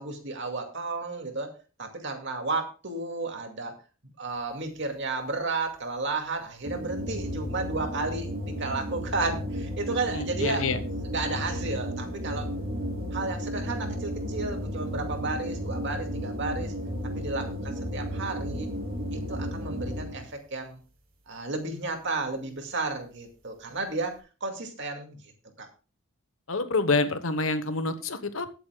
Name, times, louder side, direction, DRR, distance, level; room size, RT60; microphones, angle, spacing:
voice 1, 0.0-1.5 1.8-3.7 4.0-10.7 11.0-12.5 13.1-16.7 17.2-18.7 19.1-20.8 21.3-25.2 25.6-25.7, right 3 dB, 60° right, 4 dB, 2.3 m, -33 dB
sound 1, 6.6-20.3, equal, 45° right, 3.7 m, -33 dB
voice 2, 10.1-10.8 26.5-28.5, left 3 dB, 70° left, 11 dB, 1.1 m, -27 dB
20.5 x 8.4 x 2.3 m, 0.34 s
head